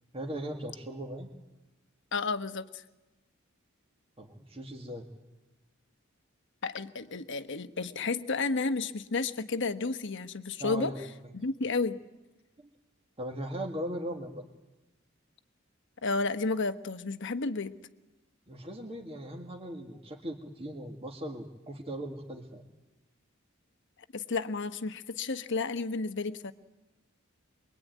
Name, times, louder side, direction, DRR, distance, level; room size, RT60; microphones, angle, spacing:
voice 1, 0.1-1.3 4.2-5.1 10.6-11.0 13.2-14.4 18.5-22.6, right 1 dB, 30° right, 0 dB, 2.0 m, -38 dB
voice 2, 2.1-2.8 6.6-10.9 11.3-12.0 16.0-17.7 24.1-26.5, left 3 dB, 60° left, 10 dB, 1.1 m, -32 dB
24.0 x 23.0 x 9.3 m, 1.0 s
head